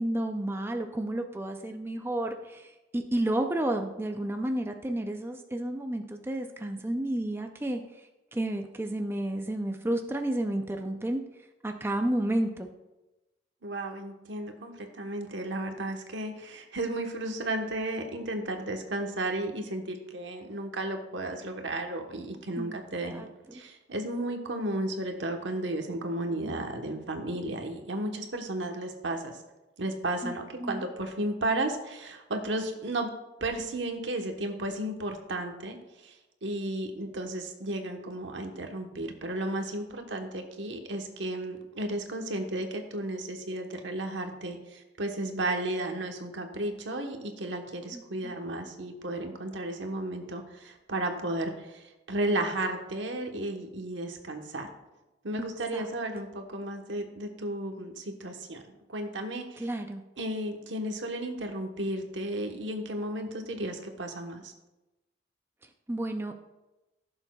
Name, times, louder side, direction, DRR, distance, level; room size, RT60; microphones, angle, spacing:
voice 1, 0.0-7.8 8.3-11.2 11.6-12.7 22.6-22.8 23.1-23.3 30.2-30.3 30.6-30.8 47.9-48.3 55.7-55.8 59.6-60.0 65.9-66.4, right 1 dB, 15° right, 5 dB, 0.5 m, -31 dB
voice 2, 13.6-23.2 23.5-29.4 29.8-33.1 33.4-35.8 36.0-36.1 36.4-54.7 55.2-58.6 58.9-59.7 60.2-64.5, right 1 dB, 80° right, 4 dB, 1.1 m, -33 dB
15.5 x 7.1 x 2.3 m, 1.0 s
head